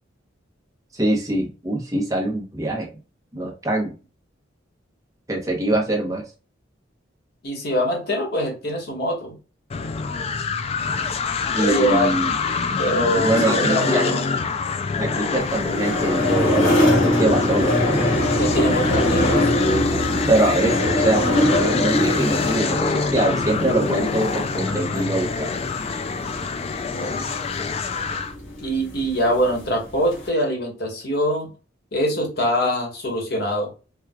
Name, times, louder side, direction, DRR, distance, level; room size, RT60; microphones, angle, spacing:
voice 1, 0.9-2.9 3.3-3.9 5.3-6.2 11.5-12.4 13.2-14.2 15.0-17.7 20.3-25.5, right 1 dB, 15° right, 0 dB, 0.9 m, -23 dB
voice 2, 7.4-9.3 11.6-12.3 12.8-14.2 18.4-19.5 26.9-27.2 28.6-31.5 31.9-33.7, equal, 55° left, 1 dB, 1.3 m, -23 dB
sound 1, 9.7-28.3, left 5 dB, 30° left, 0.3 m, -26 dB
sound 2, 15.4-30.3, left 1 dB, 80° left, 1.6 m, -23 dB
4.5 x 2.3 x 2.3 m, 0.33 s
head